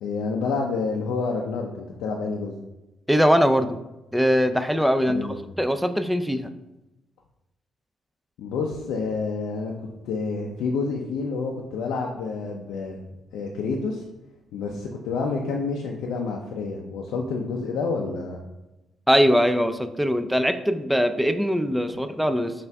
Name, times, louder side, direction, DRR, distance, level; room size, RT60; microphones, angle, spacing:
voice 1, 0.0-2.5 5.1-5.4 8.4-13.0 13.3-14.0 14.5-18.4, left 4 dB, 90° left, 0 dB, 0.4 m, -28 dB
voice 2, 3.1-3.8 4.1-5.2 5.6-6.5 19.1-22.5, equal, 5° right, 9 dB, 0.3 m, -21 dB
5.6 x 2.5 x 3.4 m, 0.98 s
cardioid pair, 90°, 0 cm